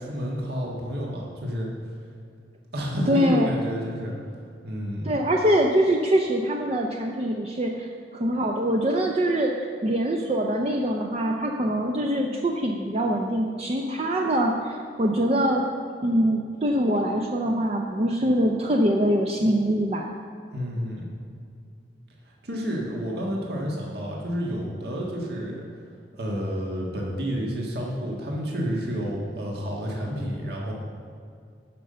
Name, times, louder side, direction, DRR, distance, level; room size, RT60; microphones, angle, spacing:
voice 1, 0.0-1.7 2.7-4.1 4.6-5.1 20.5-21.0 22.2-25.6 26.1-30.7, equal, 65° right, -2 dB, 1.6 m, -30 dB
voice 2, 3.1-3.5 5.0-15.7 16.0-20.1, equal, 35° right, 1 dB, 0.6 m, -24 dB
10.5 x 5.4 x 6.8 m, 2.4 s
head